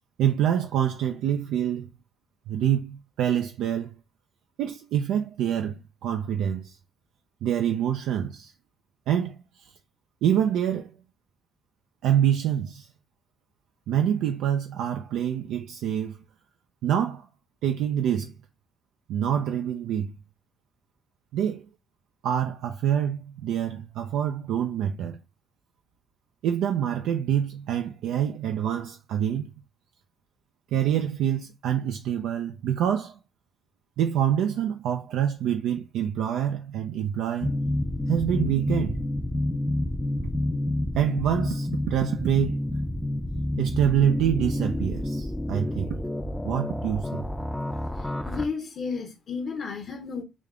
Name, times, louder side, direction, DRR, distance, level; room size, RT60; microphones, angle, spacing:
voice 1, 0.2-1.9 2.5-4.0 4.6-6.8 7.4-8.5 9.1-9.7 10.2-10.9 12.0-12.9 13.9-16.2 16.8-17.3 17.6-18.3 19.1-20.2 21.3-21.7 22.2-25.2 26.4-29.5 30.7-33.2 34.0-37.6 38.1-39.0 40.9-42.7 43.6-46.0 46.4-47.3, right 9 dB, 90° right, 0.3 m, -26 dB
sound 1, 37.4-48.5, left 1 dB, 5° left, 0.4 m, -29 dB
voice 2, 47.7-50.2, left 5 dB, 60° left, 0.7 m, -33 dB
3.5 x 2.3 x 3.6 m
cardioid pair, 90°, 0 cm